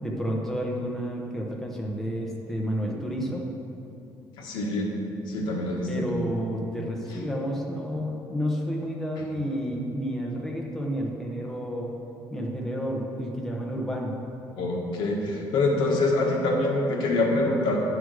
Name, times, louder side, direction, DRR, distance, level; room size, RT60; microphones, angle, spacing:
voice 1, 0.0-3.4 5.9-11.9 12.3-14.1, equal, 5° left, -1 dB, 0.8 m, -30 dB
voice 2, 4.4-4.9 5.3-6.1 14.6-17.8, left 2 dB, 80° left, 0 dB, 1.4 m, -25 dB
9.7 x 4.9 x 6.3 m, 2.7 s
cardioid pair, 160°, 8 cm